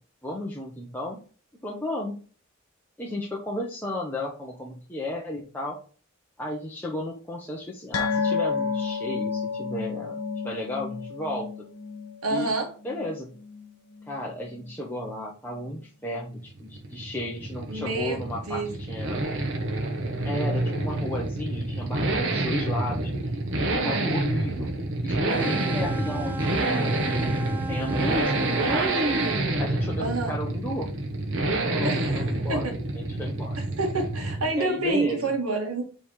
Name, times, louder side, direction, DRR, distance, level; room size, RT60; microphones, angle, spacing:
voice 1, 0.2-1.2 1.6-2.2 3.0-5.8 6.4-11.5 12.3-12.5 12.8-13.3 14.1-19.2 20.2-23.1 23.6-24.7 25.0-29.0 29.6-30.9 31.6-32.6 32.9-33.6 34.6-35.3, left 1 dB, 10° left, -2 dB, 0.9 m, -33 dB
sound 1, 7.9-14.7 15.0-15.2 15.6-15.7, left 5 dB, 85° left, 1.2 m, -31 dB
voice 2, 12.2-12.7 17.7-18.7 30.0-30.3 31.8-32.0 32.5-32.7 33.6-35.8, right 3 dB, 80° right, 1 dB, 1.7 m, -28 dB
Accelerating revving vroom, 16.4-34.6 34.9-35.0, right 2 dB, 60° right, 1.0 m, -28 dB
sound 2, 25.3-29.4, right 2 dB, 5° right, 0.5 m, -36 dB
5.0 x 3.4 x 5.6 m, 0.40 s
head